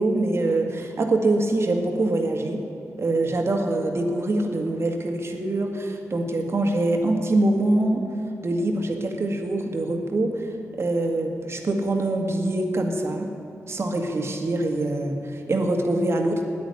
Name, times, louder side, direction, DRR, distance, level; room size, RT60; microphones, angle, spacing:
voice 1, 0.0-2.6 3.0-8.0 8.4-10.5 10.8-13.3 13.7-16.4, right 2 dB, 55° right, 3 dB, 1.9 m, -24 dB
9.5 x 9.4 x 9.8 m, 2.8 s
cardioid pair, 50°, 5 cm